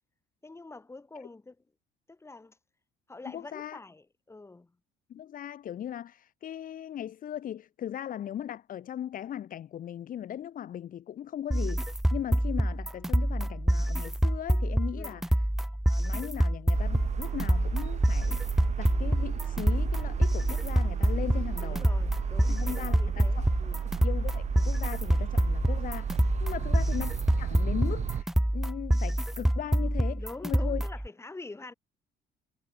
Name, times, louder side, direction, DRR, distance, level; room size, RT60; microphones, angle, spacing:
voice 1, 0.4-1.6 2.1-2.6 3.1-4.7 15.0-15.3 21.6-23.9 26.5-26.8 30.1-31.7, left 3 dB, 15° left, 3.3 m, -46 dB
voice 2, 3.3-3.8 5.1-15.5 15.9-18.4 18.8-21.9 22.5-23.5 23.8-26.1 26.4-30.8, left 10 dB, 55° left, 2.4 m, -38 dB
sound 1, 11.5-31.1, right 1 dB, ahead, 0.4 m, -27 dB
sound 2, 16.7-28.2, right 8 dB, 40° right, 1.5 m, -34 dB
cardioid pair, 110°, 17 cm